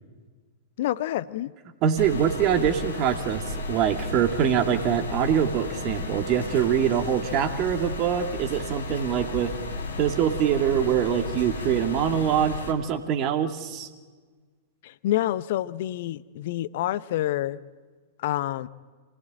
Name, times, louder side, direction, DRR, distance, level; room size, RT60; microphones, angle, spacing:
voice 1, 0.8-1.5 14.8-17.6 18.2-18.7, left 14 dB, 50° left, 17 dB, 0.7 m, -28 dB
voice 2, 1.8-3.4 3.7-9.5 10.0-13.9, right 9 dB, 35° right, 6 dB, 2.2 m, -24 dB
sound 1, 2.0-12.7, left 2 dB, 70° left, 4.0 m, -34 dB
27.0 x 19.5 x 8.9 m, 1.5 s
figure-of-eight pair, 100°, 0 cm